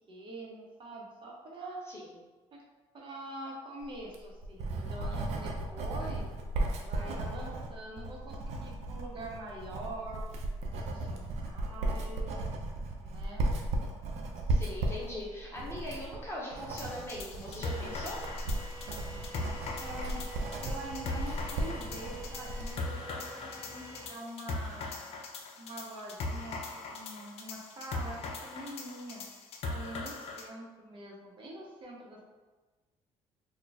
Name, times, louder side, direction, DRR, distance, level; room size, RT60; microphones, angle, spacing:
voice 1, 0.1-1.8 2.5-2.6 2.9-6.3 6.8-10.4 10.9-12.4 13.0-13.4 19.8-20.2 20.6-24.9 25.6-29.2 29.6-32.2, right 1 dB, 45° right, -2 dB, 0.9 m, -44 dB
Writing, 4.0-22.7, right 2 dB, 70° right, 0.5 m, -35 dB
voice 2, 14.5-18.2, left 1 dB, 20° left, -5 dB, 0.9 m, -40 dB
sound 1, 16.8-30.5, left 3 dB, 60° left, 0.4 m, -40 dB
sound 2, 17.6-24.1, right 1 dB, 20° right, 1.4 m, -47 dB
2.4 x 2.3 x 4.0 m, 1.3 s
cardioid pair, 85°, 12 cm